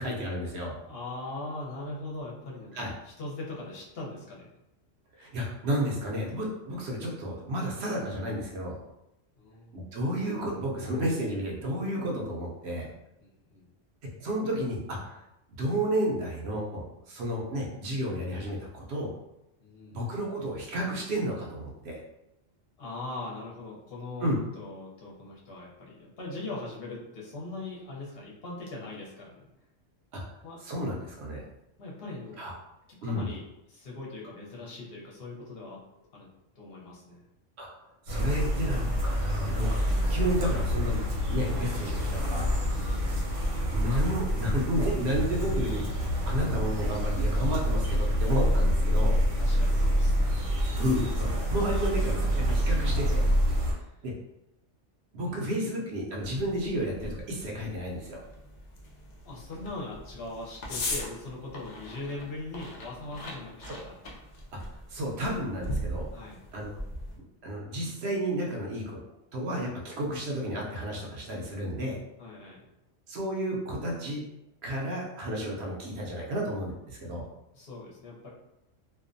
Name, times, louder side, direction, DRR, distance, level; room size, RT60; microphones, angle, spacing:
voice 1, 0.0-0.8 2.7-2.9 5.2-8.8 9.7-12.9 14.2-15.2 15.6-19.1 19.9-22.0 24.2-24.4 30.1-30.2 30.6-31.4 32.4-32.5 33.0-33.3 37.6-37.7 38.1-39.8 40.1-41.0 41.3-42.5 43.7-45.8 46.3-49.2 50.8-53.3 54.0-54.1 55.1-58.2 64.7-66.1 66.5-66.8 67.4-69.0 69.3-72.0 73.1-74.2 74.6-77.3, equal, 65° right, -2 dB, 0.8 m, -31 dB
voice 2, 0.9-4.5 9.4-9.7 13.2-13.7 19.6-20.0 22.8-29.5 30.4-30.6 31.8-32.4 33.0-35.8 36.1-36.3 36.6-37.2 42.6-43.2 49.3-50.4 53.8-53.9 55.3-55.4 59.2-64.0 66.1-66.4 72.2-72.7 77.5-78.3, left 2 dB, 55° left, -4 dB, 0.9 m, -41 dB
sound 1, 38.1-53.7, equal, 80° right, 1.1 m, -27 dB
sound 2, 56.2-67.2, left 1 dB, 80° left, 0.3 m, -40 dB
2.4 x 2.1 x 2.5 m, 0.88 s
omnidirectional pair, 1.3 m